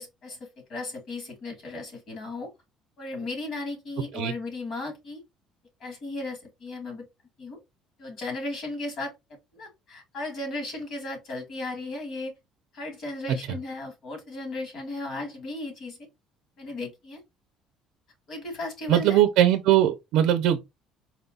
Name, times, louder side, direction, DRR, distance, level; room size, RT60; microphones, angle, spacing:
voice 1, 0.0-2.5 3.0-5.2 5.8-7.0 7.4-7.6 8.0-9.1 9.5-12.3 12.7-16.0 16.6-17.2 18.3-19.2, left 2 dB, 50° left, 2.3 m, -35 dB
voice 2, 18.9-20.6, right 12 dB, 70° right, 0.5 m, -20 dB
4.3 x 2.3 x 3.9 m
cardioid pair, 150°, 0 cm